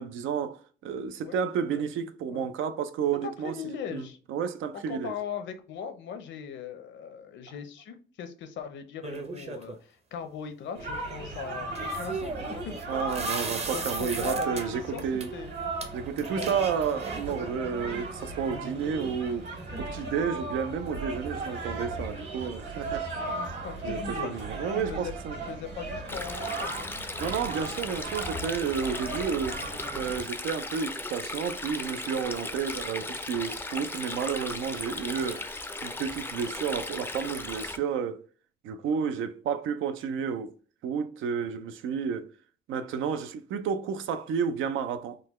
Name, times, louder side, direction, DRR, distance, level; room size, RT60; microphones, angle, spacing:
voice 1, 0.0-3.5 3.9-5.1 12.9-15.3 15.9-23.0 23.8-25.4 27.2-29.6 29.9-38.2 38.6-40.5 40.8-42.3 42.7-45.2, right 7 dB, 80° right, 0.5 m, -31 dB
voice 2, 3.2-4.2 4.7-13.1 13.4-15.0 15.3-15.5 16.4-16.5 23.1-24.5 24.7-26.9 38.9-39.0, left 6 dB, 70° left, 0.7 m, -39 dB
sound 1, 9.0-9.8 11.8-14.6 15.0-15.3 15.8-15.9 16.2-17.4, right 4 dB, 30° right, 0.7 m, -37 dB
sound 2, 10.7-30.2, right 3 dB, 60° right, 1.7 m, -36 dB
Stream, 26.1-37.8, left 2 dB, 10° left, 0.4 m, -37 dB
3.8 x 2.2 x 3.0 m
cardioid pair, 90°, 20 cm